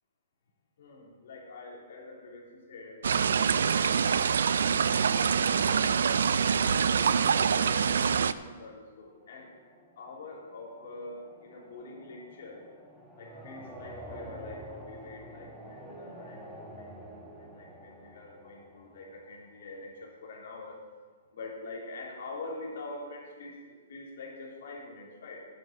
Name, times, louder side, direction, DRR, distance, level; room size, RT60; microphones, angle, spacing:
voice 1, 0.8-3.0 3.3-6.2 6.6-9.5 9.9-12.6 13.2-20.8 21.3-25.4, left 2 dB, 55° left, -3 dB, 3.4 m, -45 dB
sound 1, 3.0-8.3, right 6 dB, 80° right, 0.4 m, -25 dB
sound 2, 9.0-19.9, right 1 dB, 5° right, 1.2 m, -48 dB
9.3 x 8.0 x 7.4 m, 1.5 s
hypercardioid pair, 175°, 0 cm